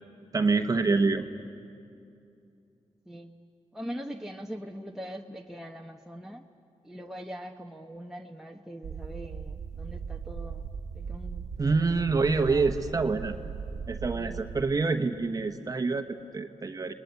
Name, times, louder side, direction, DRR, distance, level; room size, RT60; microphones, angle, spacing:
voice 1, 0.3-1.3 11.6-13.3 13.9-16.9, right 4 dB, 30° right, 7 dB, 1.1 m, -26 dB
voice 2, 3.7-6.4 6.8-10.7 10.9-12.7 14.1-14.4, equal, 5° right, 1 dB, 1.0 m, -42 dB
sound 1, 8.8-14.6, right 6 dB, 85° right, 1.5 m, -38 dB
29.0 x 20.0 x 9.6 m, 2.6 s
cardioid pair, 95°, 11 cm